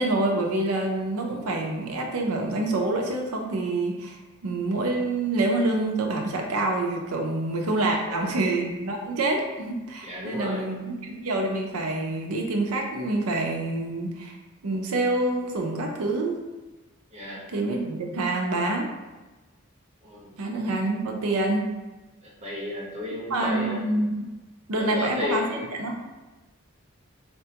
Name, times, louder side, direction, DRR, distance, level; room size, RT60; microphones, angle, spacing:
voice 1, 0.0-4.2 4.4-14.4 14.6-16.5 17.5-18.9 20.4-21.7 23.3-24.3 24.7-26.0, right 2 dB, 80° right, 2 dB, 0.6 m, -27 dB
voice 2, 10.0-10.7 17.1-17.4 20.0-20.3 22.2-23.8 24.8-25.7, left 2 dB, 30° right, -5 dB, 0.9 m, -33 dB
4.2 x 2.2 x 2.8 m, 1.2 s
head